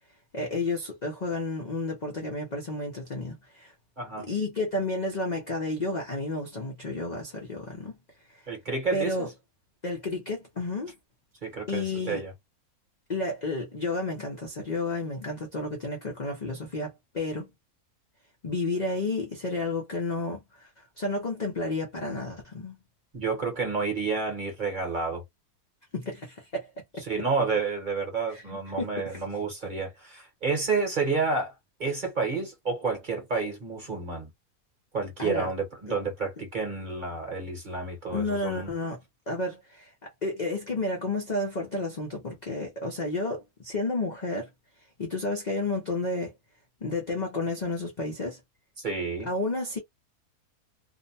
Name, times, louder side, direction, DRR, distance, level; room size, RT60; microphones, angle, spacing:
voice 1, 0.3-3.7 4.2-8.0 8.3-8.4 8.9-9.3 9.8-10.9 11.7-12.2 13.1-17.5 18.4-22.8 25.9-27.0 28.3-29.2 35.2-35.5 38.1-39.0 39.3-39.9 40.2-44.5 45.0-46.3 46.8-48.4 49.2-49.8, left 2 dB, 50° left, 0.5 m, -31 dB
voice 2, 4.0-4.3 8.5-9.3 11.4-12.3 23.1-25.2 27.1-31.5 31.8-34.3 34.9-38.7 48.8-49.3, right 4 dB, 35° right, 1.0 m, -30 dB
2.7 x 2.1 x 2.6 m
omnidirectional pair, 1.6 m